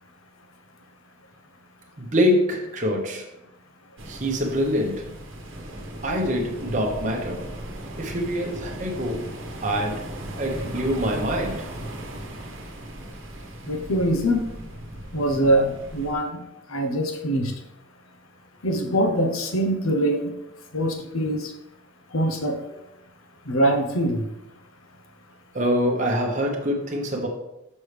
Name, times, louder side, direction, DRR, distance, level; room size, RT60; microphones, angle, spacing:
voice 1, 2.0-3.3 4.1-5.1 6.0-7.5 8.0-9.3 9.6-10.0 10.4-11.6 25.5-27.3, equal, 35° right, 0 dB, 0.9 m, -25 dB
sound 1, 4.0-16.1, right 1 dB, 70° right, 1.1 m, -37 dB
voice 2, 13.6-14.5 15.1-16.4 16.7-17.5 18.6-20.3 20.7-21.5 22.1-22.6 23.4-24.3, right 1 dB, 85° left, 4 dB, 0.9 m, -23 dB
6.3 x 5.4 x 3.3 m, 0.87 s
head